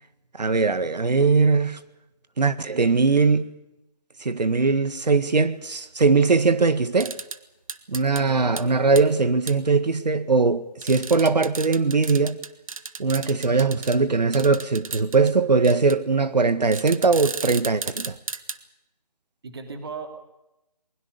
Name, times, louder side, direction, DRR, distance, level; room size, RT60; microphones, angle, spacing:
voice 1, 0.4-1.8 2.4-3.5 4.2-7.1 7.9-12.4 13.0-18.1, right 4 dB, 80° right, 1.8 m, -20 dB
sound 1, 7.0-7.4 7.7-8.2 8.6-8.7 9.0-9.1 9.5-9.6 10.8-14.0 14.3-15.3 15.6-15.9 16.7-18.6, right 4 dB, 55° right, 1.4 m, -34 dB
voice 2, 8.1-8.9 19.4-20.1, right 4 dB, 35° right, 2.9 m, -37 dB
21.5 x 21.0 x 6.8 m
figure-of-eight pair, 170°, 21 cm